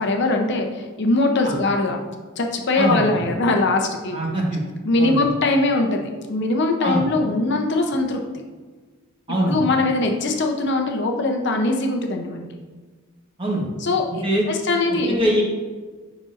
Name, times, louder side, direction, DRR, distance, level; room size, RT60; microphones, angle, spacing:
voice 1, 0.0-2.0 2.4-4.2 4.8-8.2 9.4-12.6 13.8-15.3, left 2 dB, 50° left, 3 dB, 0.6 m, -21 dB
voice 2, 2.8-3.2 4.1-4.6 5.0-5.2 6.8-7.0 9.3-9.6 13.4-13.7 14.2-14.4 15.1-15.4, right 1 dB, 25° right, -3 dB, 1.1 m, -22 dB
9.6 x 3.9 x 2.5 m, 1.4 s
head